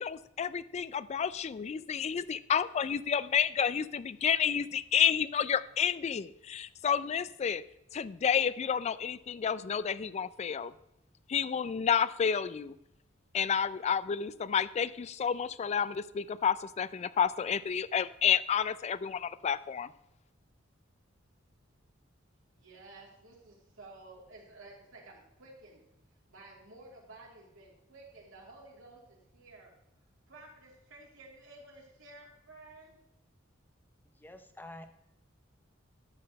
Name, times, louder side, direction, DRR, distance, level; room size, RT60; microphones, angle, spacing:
voice 1, 0.0-7.6 7.9-10.7 11.3-12.7 13.3-19.9, left 7 dB, 35° left, 17 dB, 0.3 m, -30 dB
voice 2, 22.5-25.8 26.3-29.7 30.3-33.0, right 2 dB, 80° right, -3 dB, 2.8 m, -53 dB
voice 3, 34.1-34.9, left 1 dB, 10° left, 7 dB, 0.7 m, -48 dB
11.5 x 4.1 x 6.5 m, 0.83 s
head